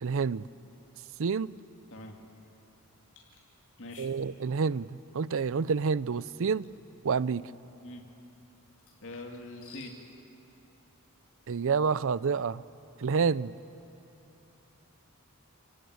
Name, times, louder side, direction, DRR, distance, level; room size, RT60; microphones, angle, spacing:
voice 1, 0.0-0.5 1.2-1.5 4.0-6.7 7.0-7.5 11.5-12.6 13.0-13.5, right 5 dB, 65° right, 18 dB, 0.5 m, -28 dB
sound 1, 3.2-3.4 3.9-4.1 6.6-6.9 8.7-10.0, left 4 dB, 85° left, 6.4 m, -55 dB
voice 2, 3.8-4.1 7.8-8.1 9.0-10.0, left 2 dB, 60° left, 2 dB, 2.6 m, -43 dB
30.0 x 16.0 x 9.6 m, 2.9 s
head